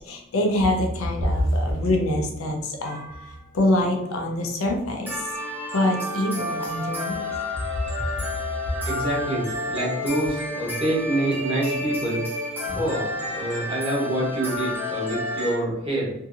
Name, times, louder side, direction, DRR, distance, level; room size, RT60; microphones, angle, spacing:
voice 1, 0.1-3.0 3.5-5.2 5.7-7.2, left 1 dB, 75° left, 2 dB, 0.5 m, -24 dB
sound 1, 2.8-3.4 5.1-15.5, left 1 dB, 10° right, 0.7 m, -30 dB
voice 2, 8.9-12.2 12.7-16.1, right 1 dB, 25° right, -6 dB, 1.1 m, -26 dB
2.7 x 2.7 x 2.5 m, 0.84 s
head